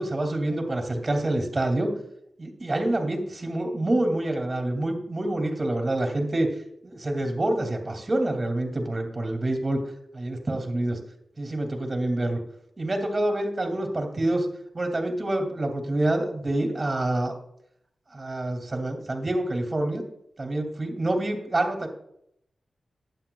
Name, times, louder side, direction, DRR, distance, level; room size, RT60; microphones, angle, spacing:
voice 1, 0.0-1.9 2.4-6.5 6.8-9.8 10.1-11.0 11.4-12.4 12.8-14.5 14.7-17.3 18.1-20.0 20.4-21.9, right 1 dB, 35° right, 3 dB, 2.7 m, -27 dB
12.0 x 9.5 x 2.4 m, 0.72 s
cardioid pair, 50°, 0 cm